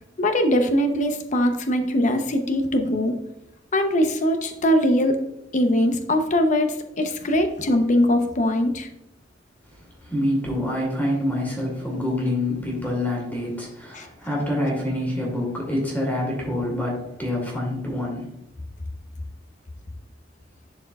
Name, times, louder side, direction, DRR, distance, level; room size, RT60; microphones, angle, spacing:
voice 1, 0.2-3.1 3.7-5.2 5.5-8.9 13.9-14.1, left 1 dB, 40° left, 7 dB, 0.7 m, -21 dB
voice 2, 10.0-18.3, left 1 dB, 10° left, -2 dB, 2.2 m, -26 dB
11.5 x 4.4 x 2.3 m, 0.84 s
head